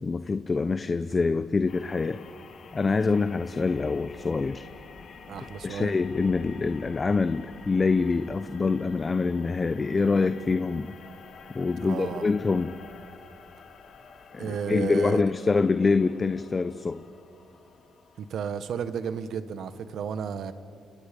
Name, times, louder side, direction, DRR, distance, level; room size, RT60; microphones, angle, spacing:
voice 1, 0.0-2.2 2.7-4.7 5.6-10.9 11.5-12.8 14.3-17.0, left 4 dB, 30° left, 11 dB, 0.7 m, -25 dB
sound 1, 1.7-19.2, left 5 dB, 60° left, 2.8 m, -49 dB
voice 2, 5.3-5.9 11.8-12.3 14.4-15.2 18.2-20.5, right 7 dB, 70° right, 11 dB, 1.4 m, -32 dB
29.5 x 28.0 x 5.4 m, 2.5 s
cardioid pair, 90°, 0 cm